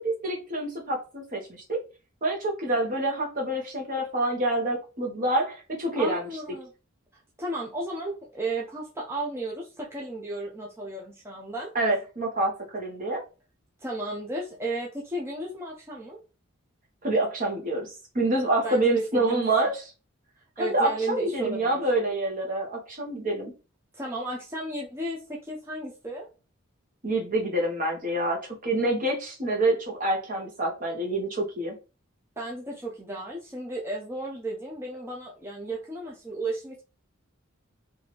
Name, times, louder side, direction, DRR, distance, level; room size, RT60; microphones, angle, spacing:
voice 1, 0.0-1.4 1.7-1.8 2.2-6.2 11.7-13.2 17.0-19.7 20.6-23.5 27.0-31.7, right 2 dB, 40° right, 0 dB, 1.1 m, -27 dB
voice 2, 6.0-6.7 7.4-11.7 13.8-16.2 18.6-19.5 20.6-21.8 23.9-26.3 32.4-36.8, right 2 dB, 10° right, -3 dB, 0.6 m, -34 dB
3.1 x 2.7 x 4.2 m, 0.32 s
head